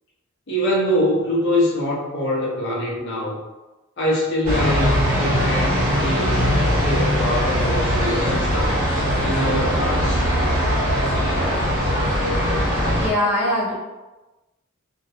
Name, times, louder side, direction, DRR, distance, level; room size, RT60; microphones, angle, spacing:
voice 1, 0.5-3.4 4.0-6.5 6.8-8.8 9.2-10.3, equal, 60° left, -5 dB, 0.7 m, -24 dB
sound 1, 4.4-13.1, equal, 40° right, 1.0 m, -20 dB
voice 2, 13.0-13.8, left 1 dB, 10° right, -7 dB, 0.6 m, -21 dB
2.6 x 2.1 x 2.7 m, 1.1 s
head